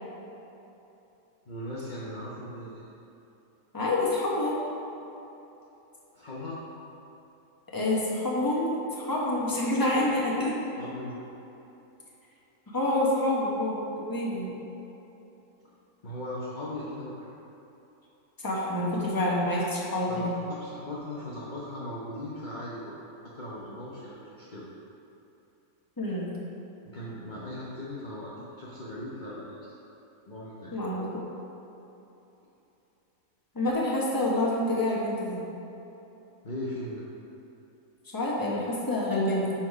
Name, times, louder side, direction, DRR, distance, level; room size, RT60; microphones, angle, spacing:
voice 1, 1.5-2.9 6.1-6.6 10.8-11.2 16.0-17.3 20.0-22.9 23.2-24.6 26.8-29.7 30.3-30.8 36.4-37.1, left 1 dB, 35° left, -6 dB, 0.9 m, -38 dB
voice 2, 3.7-4.6 7.7-8.7 9.0-10.6 12.7-14.6 18.4-20.3 26.0-26.3 30.7-31.2 33.5-35.4 38.1-39.5, left 1 dB, 15° left, -5 dB, 1.1 m, -27 dB
10.5 x 4.1 x 4.8 m, 3.0 s
omnidirectional pair, 1.6 m